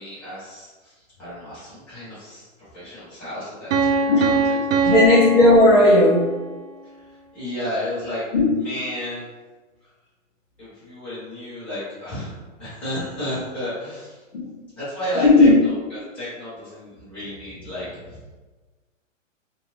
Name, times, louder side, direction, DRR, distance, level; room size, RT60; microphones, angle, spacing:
voice 1, 0.0-2.5 2.7-5.2 6.8-8.2 8.5-9.3 9.8-9.9 10.6-12.3 12.6-14.2 14.8-18.3, left 1 dB, 5° left, -16 dB, 1.2 m, -33 dB
Piano, 3.7-6.5, right 4 dB, 85° right, 0.6 m, -22 dB
voice 2, 4.8-6.3 8.3-8.5 14.3-14.6 15.2-15.5, left 2 dB, 45° left, -8 dB, 0.7 m, -14 dB
2.6 x 2.3 x 3.2 m, 1.3 s
hypercardioid pair, 170°, 39 cm